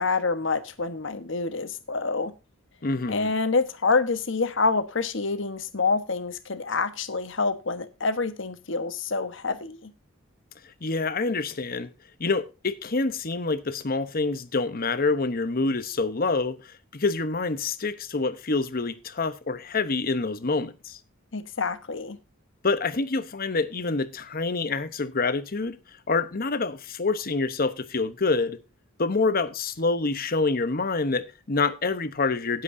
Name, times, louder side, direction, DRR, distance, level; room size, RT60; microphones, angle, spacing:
voice 1, 0.0-2.3 3.1-9.9 21.3-22.2, left 4 dB, 65° left, 1.2 m, -27 dB
voice 2, 2.8-3.3 10.6-11.9 12.2-21.0 22.6-25.8 26.1-28.6 29.0-32.6, left 3 dB, 45° left, 1.0 m, -27 dB
18.0 x 7.8 x 2.7 m
head